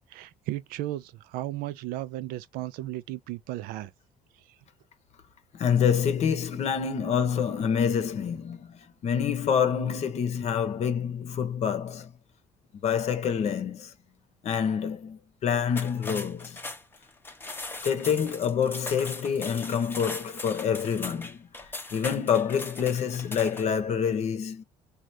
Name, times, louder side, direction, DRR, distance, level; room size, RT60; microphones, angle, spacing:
voice 1, 0.1-3.9, right 15 dB, 85° right, 0.4 m, -35 dB
voice 2, 5.5-12.1 12.8-13.9 14.4-16.6 17.8-21.5 21.9-24.6, left 7 dB, 50° left, 0.8 m, -27 dB
sound 1, 15.7-23.8, left 2 dB, 15° left, 0.7 m, -39 dB
3.3 x 2.4 x 2.6 m
cardioid pair, 115°, 15 cm